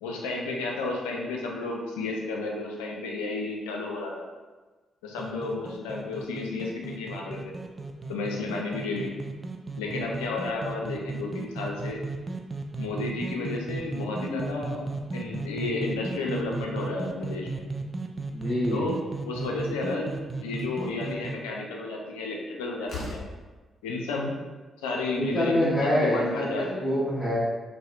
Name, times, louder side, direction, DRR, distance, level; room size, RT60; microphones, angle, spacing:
voice 1, 0.0-4.2 5.0-7.5 8.1-9.1 9.8-12.0 12.8-17.6 18.7-19.0 19.3-20.1 20.4-23.2 23.8-24.3 24.8-26.9, left 3 dB, 85° left, -1 dB, 0.4 m, -32 dB
sound 1, 5.2-21.4, right 3 dB, 35° right, 0.3 m, -35 dB
voice 2, 18.3-18.8 25.1-27.4, left 1 dB, 35° left, -12 dB, 1.5 m, -26 dB
Slam, 20.5-20.8 22.3-22.4 22.8-23.4, left 2 dB, 60° left, 0.7 m, -38 dB
4.0 x 2.1 x 2.4 m, 1.3 s
hypercardioid pair, 45°, 0 cm